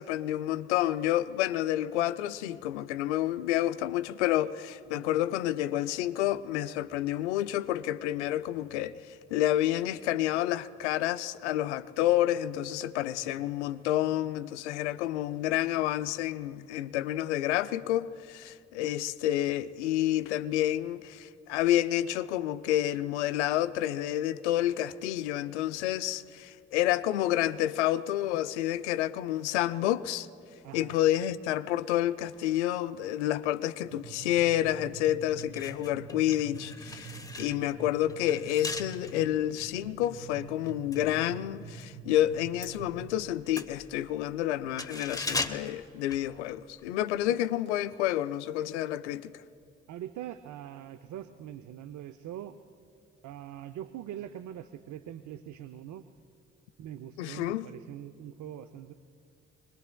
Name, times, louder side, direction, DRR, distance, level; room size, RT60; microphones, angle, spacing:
voice 1, 0.0-9.0 9.3-30.3 30.7-49.3 57.2-57.7, left 13 dB, 85° left, 0.5 m, -29 dB
voice 2, 30.6-30.9 47.3-47.4 49.9-52.5 53.2-56.1 56.8-58.9, right 11 dB, 60° right, 0.7 m, -43 dB
sound 1, 33.8-43.1, right 5 dB, 85° right, 1.5 m, -46 dB
sound 2, 35.4-41.9 42.2-46.8 47.1-47.3, left 3 dB, 10° left, 1.1 m, -40 dB
26.0 x 20.5 x 2.3 m
hypercardioid pair, 40°, 34 cm